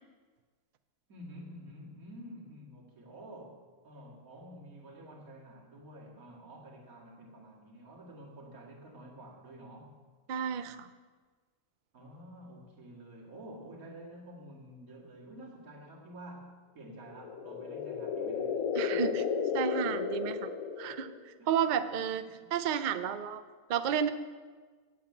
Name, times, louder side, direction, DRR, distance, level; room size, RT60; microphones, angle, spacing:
voice 1, 1.1-9.9 11.9-18.6 18.9-19.3 21.4-21.5 22.1-22.5, right 1 dB, 65° right, -2 dB, 2.4 m, -49 dB
voice 2, 10.3-10.9 18.7-19.2 19.5-20.5 20.8-22.2 22.5-23.4 23.7-24.1, right 8 dB, 85° right, 11 dB, 0.4 m, -31 dB
sound 1, 17.1-21.3, left 6 dB, 70° left, 1.2 m, -33 dB
8.6 x 7.6 x 8.4 m, 1.4 s
omnidirectional pair, 1.6 m